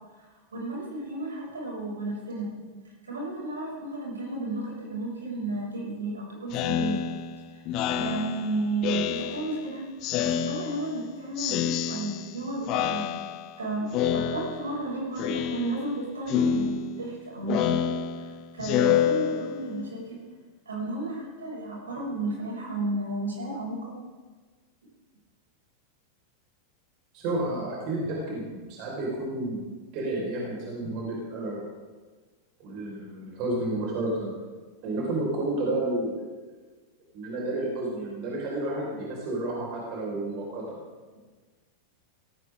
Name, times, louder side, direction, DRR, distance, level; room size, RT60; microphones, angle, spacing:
voice 1, 0.5-2.5 3.0-7.0 8.0-9.9 10.2-13.2 13.6-17.8 18.2-20.2 20.6-23.9, right 2 dB, 70° right, -3 dB, 6.6 m, -33 dB
Speech synthesizer, 6.5-9.7 10.0-11.0 11.4-12.4 12.7-13.6 13.9-14.8 15.2-16.0 16.3-19.8, left 9 dB, 40° left, 0.9 m, -28 dB
voice 2, 27.1-31.7 32.6-34.3 34.8-36.2 37.1-40.6, right 2 dB, 40° right, -3 dB, 5.2 m, -31 dB
18.0 x 18.0 x 3.8 m, 1.4 s
figure-of-eight pair, 90°, 0 cm